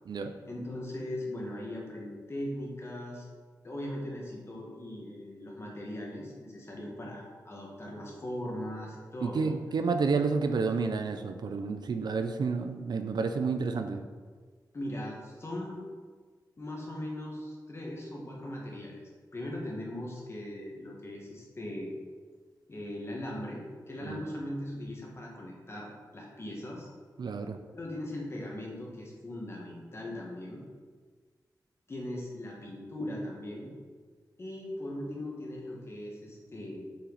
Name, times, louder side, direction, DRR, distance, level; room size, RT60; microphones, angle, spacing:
voice 1, 0.4-3.3 3.6-9.6 14.7-15.9 16.6-19.0 19.3-21.9 22.7-23.6 23.9-26.9 27.7-30.6 31.9-33.7 34.4-36.9, left 1 dB, 35° left, -2 dB, 1.6 m, -39 dB
voice 2, 9.2-14.0 24.0-24.2 27.2-27.6, right 4 dB, 75° right, 8 dB, 0.5 m, -30 dB
6.4 x 5.8 x 4.0 m, 1.5 s
wide cardioid pair, 130°, 7 cm